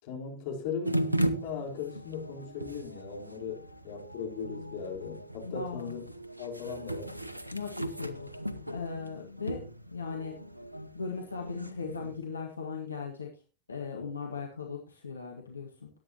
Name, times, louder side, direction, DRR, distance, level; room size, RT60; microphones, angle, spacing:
voice 1, 0.0-6.0 6.4-7.1, left 6 dB, 50° left, 4.0 m, -38 dB
sound 1, 0.8-12.2, right 1 dB, 85° right, 0.9 m, -37 dB
voice 2, 5.4-6.0 7.5-8.4 8.7-10.4 10.9-13.4 13.7-15.9, left 5 dB, 75° left, 1.5 m, -38 dB
18.0 x 8.7 x 2.9 m
figure-of-eight pair, 90°, 0 cm